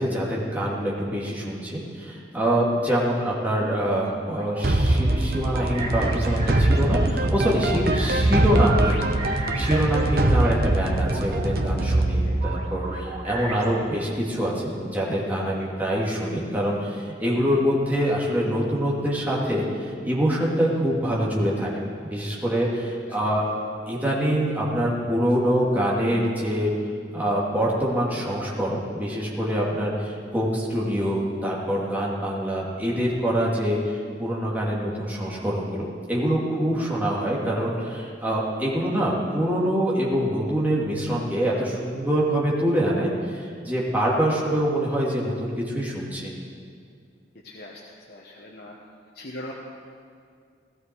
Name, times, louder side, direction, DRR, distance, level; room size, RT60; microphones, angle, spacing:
voice 1, 0.0-21.7 22.0-23.4 23.9-26.7 27.1-46.3, equal, 10° right, -5 dB, 2.5 m, -25 dB
sound 1, 4.1-10.3 10.7-13.9, right 2 dB, 35° right, 1.7 m, -37 dB
sound 2, 4.6-13.5, right 1 dB, 55° right, 0.9 m, -23 dB
voice 2, 9.9-10.3 12.2-12.5 22.7-23.2 47.4-48.7 49.1-49.5, left 1 dB, 55° left, -2 dB, 1.2 m, -42 dB
17.0 x 14.0 x 4.6 m, 2.2 s
head